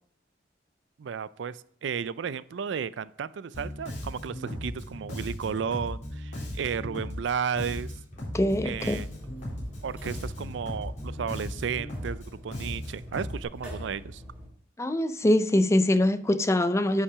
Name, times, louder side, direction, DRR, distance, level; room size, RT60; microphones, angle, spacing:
voice 1, 1.0-7.9 8.6-9.1 9.8-14.2, right 6 dB, 70° right, 0.4 m, -33 dB
Bass guitar, 3.5-13.4, left 1 dB, 40° left, 3.9 m, -37 dB
voice 2, 8.3-9.0 14.8-17.0, left 1 dB, 15° left, 0.4 m, -23 dB
sound 1, 8.3-14.5, equal, 5° right, 3.2 m, -44 dB
9.9 x 5.9 x 4.8 m
head